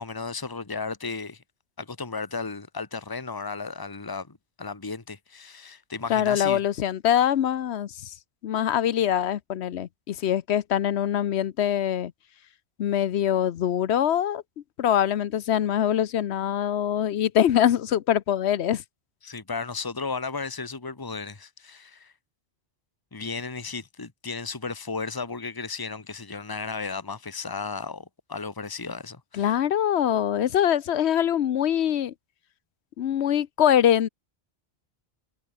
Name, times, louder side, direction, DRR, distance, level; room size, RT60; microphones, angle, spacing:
voice 1, 0.0-1.4 1.8-6.6 19.2-22.1 23.1-29.6, left 4 dB, 20° left, 1.4 m, -34 dB
voice 2, 6.1-7.9 8.4-12.1 12.8-14.4 14.8-18.8 29.3-32.1 33.0-34.1, left 10 dB, 85° left, 1.0 m, -23 dB
omnidirectional pair, 1.1 m